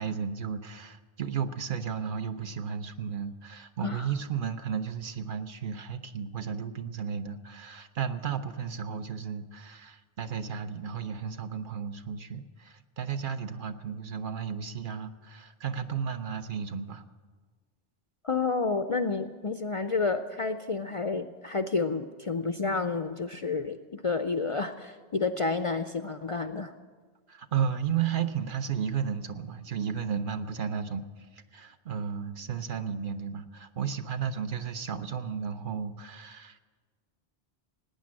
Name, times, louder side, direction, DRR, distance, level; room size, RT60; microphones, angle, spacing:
voice 1, 0.0-17.0 27.3-36.6, right 7 dB, 55° right, 8 dB, 0.9 m, -33 dB
voice 2, 18.2-26.7, left 4 dB, 45° left, 9 dB, 0.5 m, -30 dB
18.0 x 9.5 x 7.5 m, 1.5 s
omnidirectional pair, 1.0 m